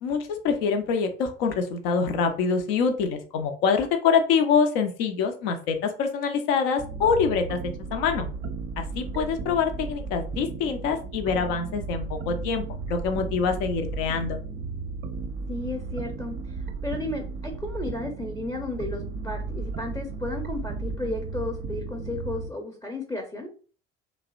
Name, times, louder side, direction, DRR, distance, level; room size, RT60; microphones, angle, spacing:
voice 1, 0.0-7.6 7.9-8.3 8.8-14.4, left 5 dB, 70° left, 6 dB, 0.6 m, -25 dB
sound 1, 6.8-22.5, right 4 dB, 35° right, 0.5 m, -34 dB
voice 2, 15.5-23.5, left 2 dB, 10° left, 1 dB, 0.6 m, -33 dB
2.7 x 2.1 x 2.4 m, 0.39 s
hypercardioid pair, 55°, 31 cm